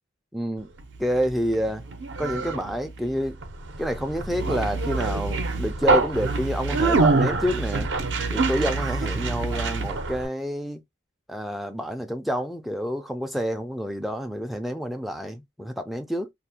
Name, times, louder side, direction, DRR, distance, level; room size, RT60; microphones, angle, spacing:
voice 1, 0.3-0.7 1.0-1.8 2.2-3.4 3.8-7.9 8.3-10.8 11.3-16.3, equal, ahead, 0.3 m, -28 dB
Conversation, 0.8-10.3, right 3 dB, 65° right, 0.5 m, -26 dB
2.4 x 2.0 x 2.8 m
head